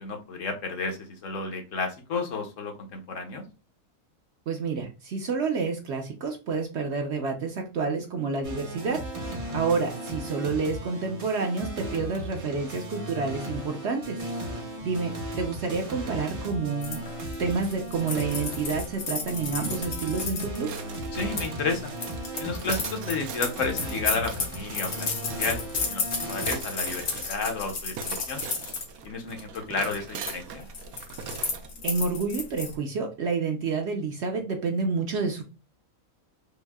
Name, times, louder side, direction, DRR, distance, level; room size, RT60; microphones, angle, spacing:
voice 1, 0.0-3.5 9.4-9.6 21.1-21.9 22.4-25.1 25.4-25.6 25.9-28.4 29.0-30.6, left 4 dB, 65° left, 3 dB, 1.1 m, -32 dB
voice 2, 4.5-9.0 9.5-14.2 14.8-17.0 17.4-20.7 31.8-35.4, right 4 dB, 60° right, 3 dB, 0.8 m, -29 dB
sound 1, 8.4-26.6, equal, 35° right, 0.6 m, -36 dB
sound 2, 16.8-21.5 22.0-28.9 29.3-29.6 29.8-30.3 30.6-32.7, left 5 dB, 90° left, 1.4 m, -33 dB
sound 3, 20.6-31.7, right 7 dB, 85° right, 1.1 m, -41 dB
5.3 x 2.0 x 2.2 m, 0.31 s
omnidirectional pair, 1.5 m